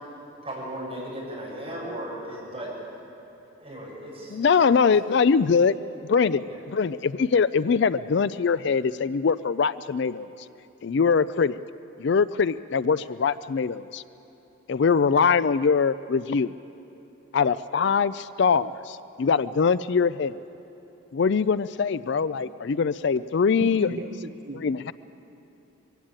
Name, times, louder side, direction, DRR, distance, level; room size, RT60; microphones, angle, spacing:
voice 1, 0.4-2.7 3.6-4.5 4.8-4.9 6.4-6.6, right 1 dB, 25° right, -5 dB, 6.8 m, -36 dB
voice 2, 4.3-5.8 6.1-10.3 10.8-11.6 12.0-14.0 14.7-16.5 17.3-20.4 21.1-23.9 24.6-24.9, left 5 dB, 55° left, 16 dB, 0.4 m, -23 dB
voice 3, 23.6-24.9, right 2 dB, 55° right, 2 dB, 1.1 m, -37 dB
22.5 x 16.5 x 8.8 m, 3.0 s
head